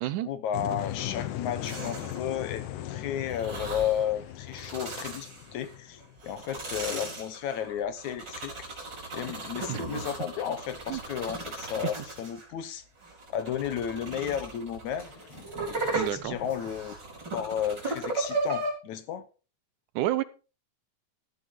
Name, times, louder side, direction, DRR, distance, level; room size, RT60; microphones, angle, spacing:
voice 1, 0.2-8.5 9.1-12.8 13.3-15.1 15.7-17.0 17.3-19.3, left 9 dB, 70° left, 2.4 m, -33 dB
sound 1, 0.5-6.4, left 13 dB, 85° left, 2.5 m, -38 dB
sound 2, 1.6-2.3 3.3-4.0 4.5-5.7 6.2-12.5 13.0-18.7, right 3 dB, 35° right, 5.1 m, -36 dB
sound 3, 10.8-13.3 14.8-17.6 18.0-18.1, left 2 dB, 45° left, 6.6 m, -51 dB
voice 2, 15.9-16.4 20.0-20.2, right 14 dB, 80° right, 2.4 m, -29 dB
14.0 x 10.0 x 4.7 m
omnidirectional pair, 3.6 m